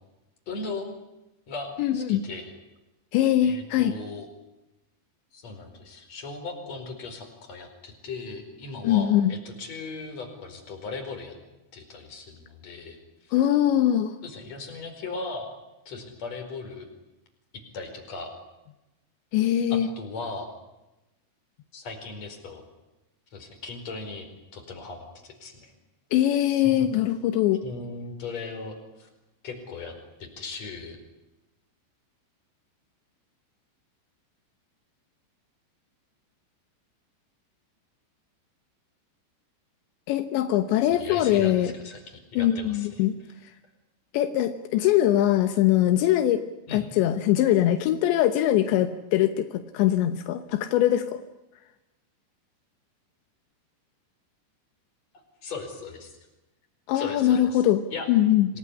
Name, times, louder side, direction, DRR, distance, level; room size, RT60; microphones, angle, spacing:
voice 1, 0.5-0.9 1.5-2.5 3.4-4.3 5.3-11.4 11.7-13.4 14.2-15.5 15.9-16.9 17.7-18.3 19.7-20.5 21.7-22.6 23.3-24.3 24.5-25.7 26.4-26.7 27.6-29.1 29.4-31.0 40.8-43.1 46.7-46.8 55.4-56.1 56.9-57.6 57.9-58.1 58.5-58.6, left 3 dB, 40° left, 4 dB, 5.7 m, -38 dB
voice 2, 1.8-2.2 3.1-3.9 8.8-9.3 13.3-14.2 19.3-19.9 26.1-27.6 40.1-41.7 42.4-43.2 44.1-46.4 46.7-51.2 56.9-57.8 58.1-58.5, left 12 dB, 80° left, 9 dB, 3.3 m, -22 dB
27.0 x 19.5 x 9.9 m, 0.99 s
omnidirectional pair, 5.1 m